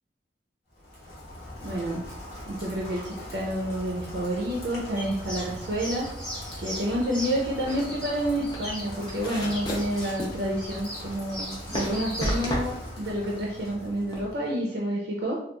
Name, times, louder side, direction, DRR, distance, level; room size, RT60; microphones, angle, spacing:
Rain, 0.7-14.5, left 1 dB, 60° left, 1.0 m, -41 dB
voice 1, 1.6-2.1 2.5-6.1 6.6-15.4, right 1 dB, 60° right, -3 dB, 0.4 m, -29 dB
sound 1, 5.0-12.4, equal, 5° left, 0.8 m, -39 dB
sound 2, 7.3-14.3, equal, 25° left, 0.5 m, -34 dB
2.9 x 2.3 x 2.2 m, 0.73 s
head